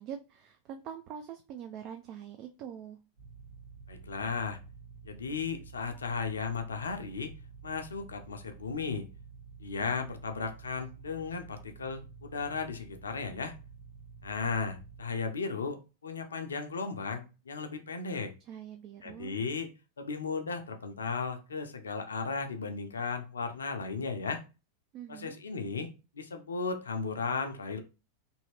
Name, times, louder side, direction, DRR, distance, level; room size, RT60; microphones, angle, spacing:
voice 1, 0.0-3.0 18.5-19.4 24.9-25.4, right 8 dB, 40° right, 0.3 m, -44 dB
sound 1, 3.2-15.0, right 5 dB, 65° right, 1.1 m, -50 dB
voice 2, 3.9-4.6 5.0-7.3 7.6-9.1 9.6-13.6 14.2-18.3 19.0-19.7 20.0-24.4 25.1-27.8, left 5 dB, 70° left, 0.5 m, -35 dB
2.8 x 2.6 x 3.0 m
figure-of-eight pair, 90°, 0 cm